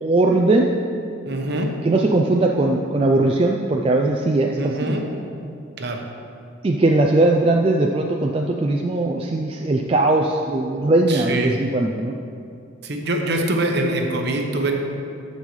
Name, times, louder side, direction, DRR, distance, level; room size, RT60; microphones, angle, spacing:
voice 1, 0.0-0.7 1.8-4.9 6.6-12.1, right 2 dB, 25° right, 1 dB, 0.3 m, -19 dB
voice 2, 1.3-1.7 4.6-5.1 5.8-6.0 11.1-11.6 12.8-14.7, right 1 dB, 55° right, 2 dB, 0.8 m, -24 dB
13.5 x 5.3 x 3.2 m, 2.5 s
head